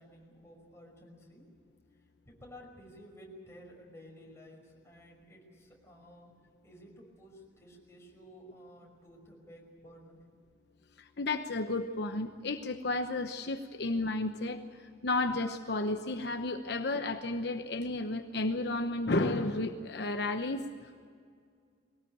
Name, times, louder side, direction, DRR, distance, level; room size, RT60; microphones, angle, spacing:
voice 1, 0.0-1.5 2.3-6.3 6.6-10.2 16.7-16.9, equal, 15° left, -1 dB, 5.7 m, -54 dB
voice 2, 11.2-14.6 15.0-20.6, left 2 dB, 65° left, 6 dB, 1.0 m, -32 dB
22.0 x 18.5 x 8.7 m, 2.2 s
head